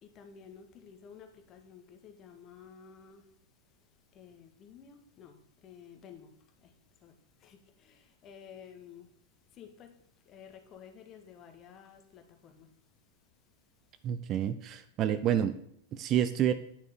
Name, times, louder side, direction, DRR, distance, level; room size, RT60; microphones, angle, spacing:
voice 1, 0.0-3.3 4.1-6.3 6.6-6.7 7.0-9.1 9.5-10.0 10.2-12.7 15.0-15.1, left 7 dB, 30° left, 1.7 m, -53 dB
voice 2, 14.0-15.6 15.9-16.5, right 10 dB, 35° right, 0.7 m, -28 dB
9.8 x 6.5 x 6.6 m
figure-of-eight pair, 90°, 0 cm